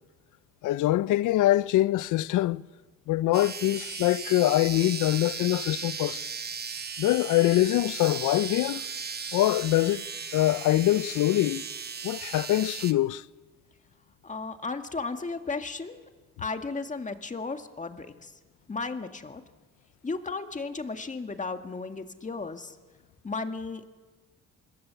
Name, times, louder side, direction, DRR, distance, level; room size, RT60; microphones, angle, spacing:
voice 1, 0.6-2.6 3.1-6.2 7.0-8.8 9.3-10.0 10.3-11.6 12.0-13.2, left 15 dB, 85° left, 0.7 m, -24 dB
sound 1, 3.3-12.9, right 5 dB, 35° right, 1.2 m, -37 dB
voice 2, 14.2-16.1 16.4-18.4 18.7-19.4 20.0-22.8 23.2-23.9, left 3 dB, 25° left, 1.9 m, -34 dB
26.5 x 21.0 x 7.0 m
cardioid pair, 90°, 30 cm